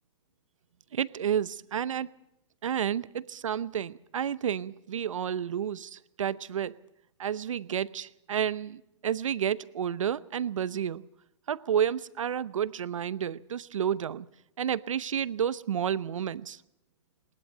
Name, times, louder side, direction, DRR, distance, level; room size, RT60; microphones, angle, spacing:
voice 1, 0.9-2.1 2.6-6.8 7.2-11.1 11.5-14.3 14.6-16.6, right 9 dB, 85° right, 0.8 m, -30 dB
20.5 x 20.0 x 6.6 m
hypercardioid pair, 140°, 16 cm